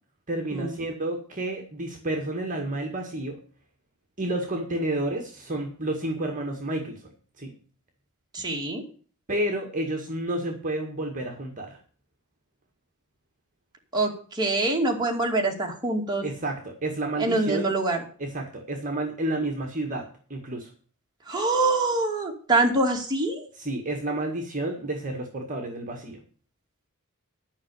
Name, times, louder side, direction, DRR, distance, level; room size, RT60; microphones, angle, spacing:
voice 1, 0.3-3.4 4.2-7.0 7.4-7.5 9.3-11.8 16.2-17.7 18.2-20.7 23.5-26.2, right 1 dB, 35° right, 3 dB, 1.8 m, -30 dB
voice 2, 8.3-8.8 13.9-16.2 17.2-18.0 21.3-23.4, right 2 dB, 20° right, 0 dB, 2.4 m, -25 dB
11.5 x 5.7 x 8.3 m, 0.43 s
head